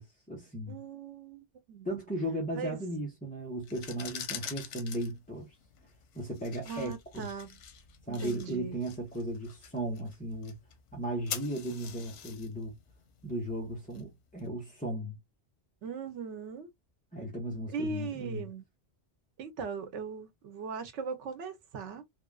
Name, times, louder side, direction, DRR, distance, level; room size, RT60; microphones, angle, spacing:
voice 1, 0.0-0.8 1.8-5.5 6.1-7.3 8.1-10.6 10.9-12.8 13.2-15.2 17.1-18.5, right 1 dB, 10° left, 0.8 m, -36 dB
voice 2, 0.7-1.9 2.6-2.8 6.6-7.6 8.1-8.8 15.8-16.7 17.7-18.6 19.4-22.0, right 5 dB, 90° right, 1.1 m, -39 dB
sound 1, 3.6-14.4, left 7 dB, 90° left, 1.0 m, -46 dB
3.4 x 2.4 x 2.3 m
omnidirectional pair, 1.2 m